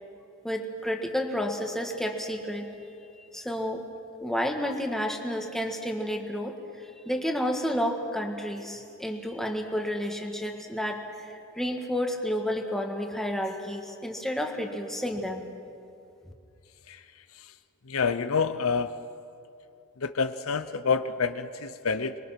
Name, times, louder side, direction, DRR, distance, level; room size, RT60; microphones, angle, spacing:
voice 1, 0.4-2.7 3.3-3.8 4.2-6.6 7.0-11.0 11.6-15.5, equal, ahead, 2 dB, 1.7 m, -30 dB
voice 2, 17.9-18.9 20.0-22.2, left 5 dB, 80° left, 11 dB, 0.7 m, -27 dB
26.0 x 22.0 x 5.9 m, 2.6 s
head